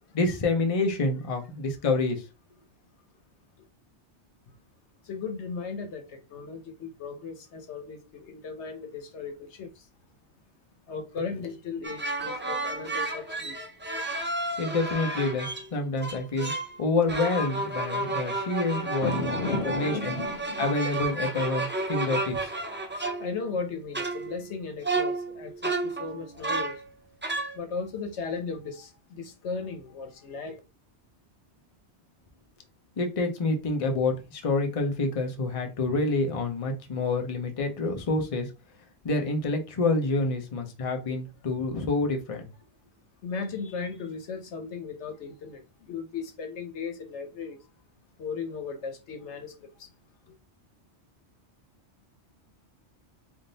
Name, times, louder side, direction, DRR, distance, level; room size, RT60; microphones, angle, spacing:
voice 1, 0.1-2.2 14.6-16.5 16.8-19.4 19.7-20.2 20.6-22.5 33.0-38.5 39.0-42.5, left 3 dB, 35° left, 0.7 m, -27 dB
voice 2, 5.0-9.9 10.9-13.6 19.0-20.7 23.2-26.8 27.5-30.6 43.2-47.7 48.2-49.9, left 5 dB, 85° left, 1.2 m, -36 dB
sound 1, 11.8-15.7 16.0-16.8 17.1-23.6 23.9-24.5 24.8-26.8 27.2-27.6, right 2 dB, 15° right, 0.4 m, -32 dB
3.6 x 2.6 x 3.9 m
omnidirectional pair, 1.1 m